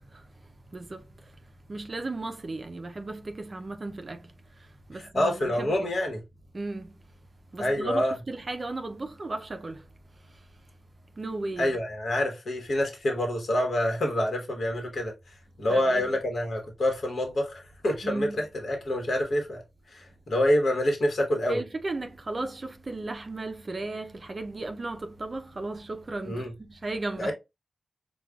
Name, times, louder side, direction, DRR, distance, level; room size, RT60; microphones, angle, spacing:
voice 1, 1.7-4.3 4.9-5.9 6.5-6.9 7.5-9.8 11.2-11.7 15.7-16.1 18.0-18.4 21.5-26.4 26.7-27.3, right 2 dB, 40° right, 0.4 m, -35 dB
voice 2, 4.9-6.2 7.6-8.2 11.6-19.6 19.9-21.6 26.3-26.5 27.2-27.3, left 1 dB, 70° left, 1.1 m, -27 dB
4.7 x 2.2 x 2.2 m
wide cardioid pair, 95°, 0 cm